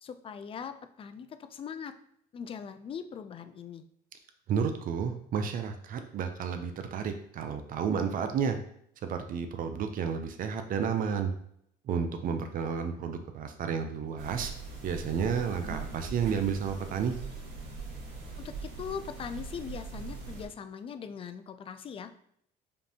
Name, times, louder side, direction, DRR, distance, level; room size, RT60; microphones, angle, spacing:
voice 1, 0.0-1.9 2.3-3.9 18.4-22.1, left 7 dB, 35° left, 10 dB, 0.3 m, -41 dB
voice 2, 4.5-8.6 9.0-11.3 11.8-14.5 14.8-17.2, right 6 dB, 55° right, 7 dB, 0.5 m, -31 dB
sound 1, 14.2-20.5, right 4 dB, 75° right, 1.4 m, -41 dB
5.1 x 2.6 x 2.8 m, 0.70 s
cardioid pair, 110°, 17 cm